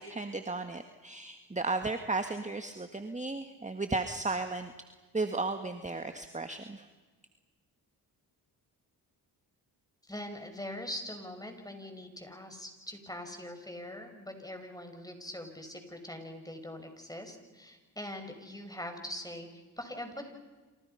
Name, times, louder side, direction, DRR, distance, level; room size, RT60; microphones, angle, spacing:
voice 1, 0.0-4.7 5.1-6.9, right 3 dB, 15° right, 7 dB, 1.8 m, -34 dB
voice 2, 10.0-20.4, left 1 dB, 10° left, 5 dB, 6.2 m, -42 dB
28.0 x 27.5 x 5.8 m, 1.3 s
supercardioid pair, 55°, 42 cm